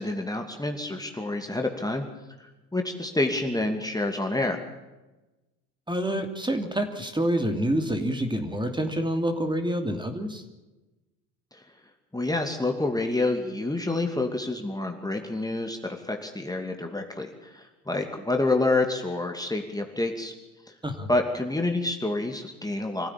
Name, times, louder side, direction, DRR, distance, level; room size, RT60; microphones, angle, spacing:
voice 1, 0.0-2.0 2.4-4.6 11.5-11.6 12.1-20.3 20.7-20.8 21.1-23.1, left 2 dB, 10° left, 3 dB, 2.6 m, -28 dB
voice 2, 5.9-10.4 20.8-21.1, right 1 dB, 10° right, 6 dB, 3.0 m, -27 dB
26.0 x 15.5 x 8.7 m, 1.1 s
hypercardioid pair, 65°, 46 cm